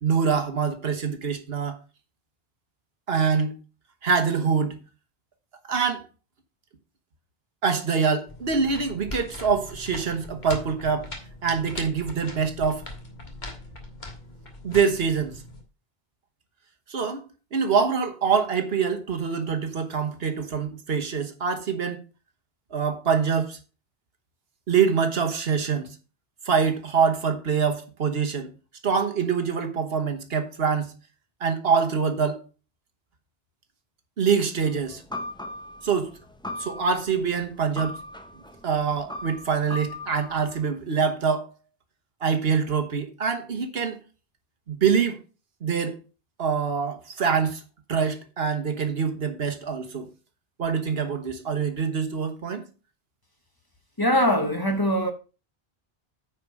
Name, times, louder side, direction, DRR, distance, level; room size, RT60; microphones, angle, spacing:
voice 1, 0.0-1.8 3.1-3.6 4.0-4.8 5.7-6.0 7.6-11.1 11.4-12.9 14.6-15.4 16.9-17.2 17.5-22.0 22.7-23.6 24.7-25.9 26.4-28.5 28.8-30.9 31.4-32.4 34.2-35.0 35.8-36.1 36.6-38.0 38.6-41.5 42.2-44.0 44.7-45.2 45.6-46.0 46.4-47.6 47.9-50.1 50.6-52.6, right 6 dB, 75° right, 1.4 m, -25 dB
sound 1, 8.3-15.6, left 2 dB, 45° left, 1.7 m, -40 dB
sound 2, 34.6-40.7, left 1 dB, 5° left, 0.7 m, -39 dB
voice 2, 54.0-55.1, equal, 20° left, 1.1 m, -22 dB
9.2 x 4.7 x 5.1 m
omnidirectional pair, 1.0 m